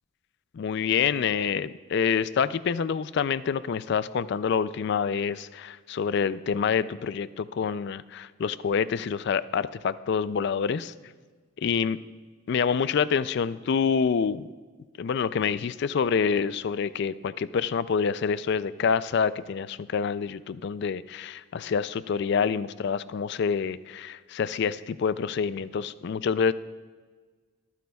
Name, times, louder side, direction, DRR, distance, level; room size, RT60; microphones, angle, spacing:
voice 1, 0.5-10.9 11.6-12.0 12.5-14.5 15.0-26.5, left 6 dB, 55° left, 16 dB, 0.3 m, -27 dB
23.5 x 9.3 x 2.3 m, 1.4 s
head